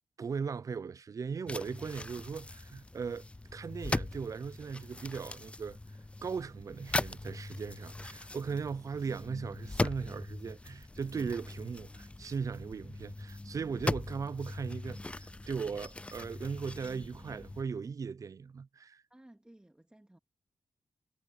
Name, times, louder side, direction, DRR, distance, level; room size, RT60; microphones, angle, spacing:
voice 1, 0.2-3.3 3.5-5.8 6.2-19.0, right 5 dB, 55° right, 0.6 m, -38 dB
sound 1, 1.5-17.6, left 2 dB, 15° left, 0.5 m, -40 dB
voice 2, 19.1-20.2, right 1 dB, 15° right, 2.5 m, -57 dB
cardioid pair, 55°, 7 cm